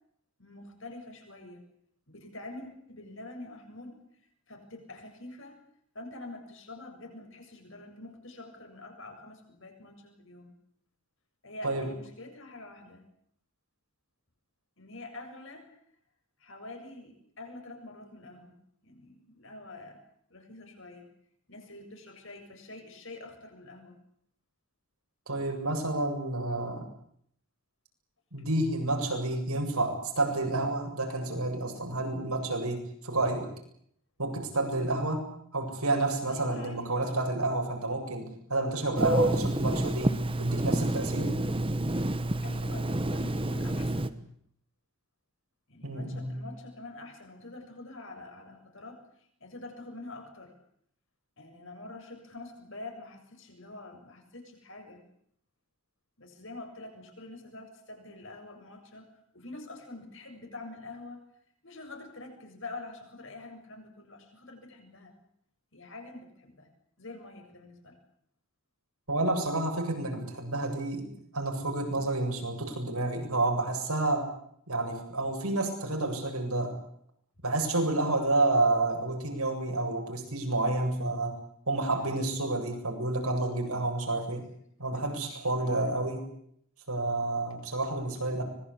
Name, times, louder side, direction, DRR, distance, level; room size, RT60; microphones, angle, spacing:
voice 1, 0.4-1.6 2.1-4.1 4.5-5.6 5.9-10.5 11.4-13.0 14.8-15.7 16.4-18.5 18.8-20.0 20.3-21.1 21.5-24.0 36.3-37.0 42.4-44.1 45.7-49.1 49.4-50.5 51.4-55.0 56.2-61.3 61.6-65.1 65.7-66.7 67.0-68.0 82.0-82.2 85.6-86.0, left 2 dB, 60° left, 4 dB, 7.4 m, -46 dB
voice 2, 25.3-26.9 28.3-33.5 34.2-35.3 35.5-41.4 45.8-46.3 69.1-74.3 74.7-76.8 77.4-81.4 81.7-84.5 84.8-86.2 86.9-88.4, right 2 dB, 85° right, 3 dB, 8.0 m, -30 dB
Telephone, 39.0-44.1, right 1 dB, 25° right, 1.2 m, -28 dB
25.0 x 21.5 x 8.6 m, 0.69 s
head